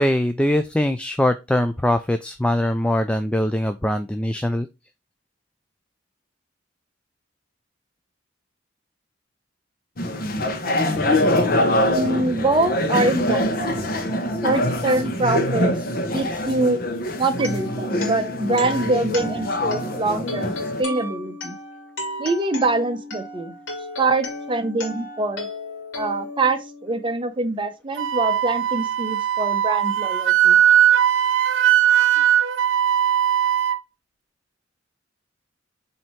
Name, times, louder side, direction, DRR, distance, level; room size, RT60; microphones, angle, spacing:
voice 1, 0.0-4.7, left 1 dB, 5° left, 0.3 m, -22 dB
sound 1, 10.0-20.8, left 1 dB, 50° left, 0.9 m, -24 dB
voice 2, 11.9-13.8 14.4-15.7 16.1-16.8 17.2-20.5 20.8-21.6 22.2-23.5 24.0-25.5 25.9-30.6 31.9-32.1, right 2 dB, 25° right, 0.8 m, -24 dB
sound 2, 17.3-27.2, left 2 dB, 70° left, 1.5 m, -34 dB
Wind instrument woodwind instrument, 28.0-33.8, right 10 dB, 85° right, 0.5 m, -19 dB
7.5 x 2.8 x 4.4 m
head